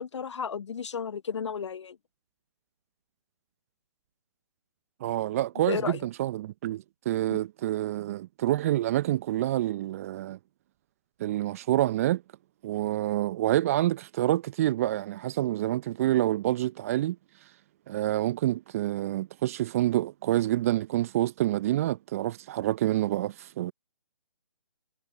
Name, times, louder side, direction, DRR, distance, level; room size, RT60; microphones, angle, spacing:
voice 1, 0.0-2.0 5.7-6.0, left 6 dB, 55° left, 0.6 m, -33 dB
voice 2, 5.0-10.4 11.2-12.2 12.6-17.2 17.9-23.7, right 14 dB, 25° right, 0.7 m, -27 dB
figure-of-eight pair, 140°, 18 cm